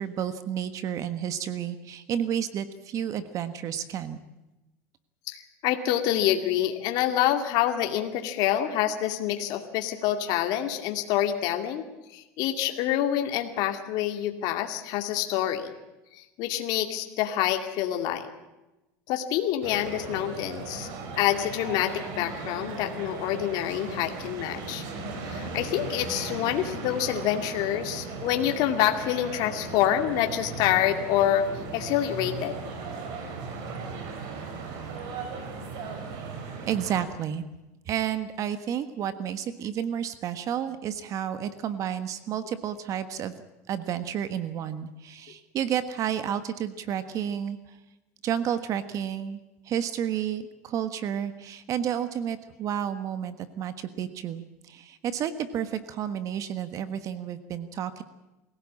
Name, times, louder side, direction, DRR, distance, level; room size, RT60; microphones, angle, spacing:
voice 1, 0.0-4.2 36.7-37.4 37.9-43.3 43.7-47.8 48.2-49.4 49.6-58.0, right 9 dB, 45° right, 12 dB, 1.4 m, -31 dB
voice 2, 5.3-11.8 12.1-15.7 16.1-18.3 19.1-20.9 21.2-24.8 25.2-31.5 31.7-32.6, left 11 dB, 60° left, 5 dB, 2.3 m, -27 dB
sound 1, 19.6-37.0, right 4 dB, 60° right, 5.2 m, -37 dB
23.0 x 17.0 x 8.7 m, 1.0 s
supercardioid pair, 120°, 8 cm